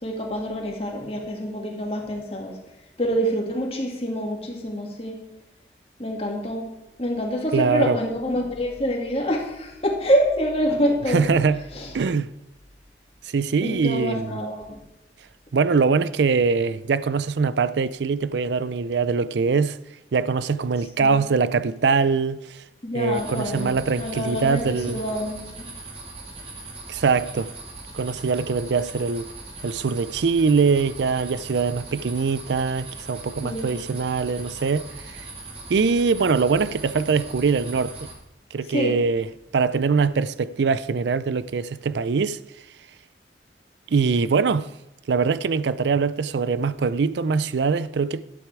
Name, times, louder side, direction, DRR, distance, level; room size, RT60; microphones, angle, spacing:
voice 1, 0.0-2.6 3.0-5.2 6.0-6.7 7.0-11.3 11.7-11.9 13.6-14.8 21.0-21.1 22.8-25.7 33.4-33.8 38.7-39.0, equal, 35° left, 2.1 m, -26 dB
voice 2, 7.5-8.0 11.1-11.6 11.9-12.3 13.2-14.4 15.5-19.8 20.1-22.6 22.9-25.0 26.9-27.5 27.9-29.3 29.6-35.3 35.7-38.0 38.5-39.3 39.5-42.4 43.9-44.7 45.1-48.2, right 5 dB, 75° right, 0.4 m, -22 dB
sound 1, 23.1-38.2, right 2 dB, 30° right, 2.2 m, -40 dB
12.0 x 9.1 x 4.8 m
head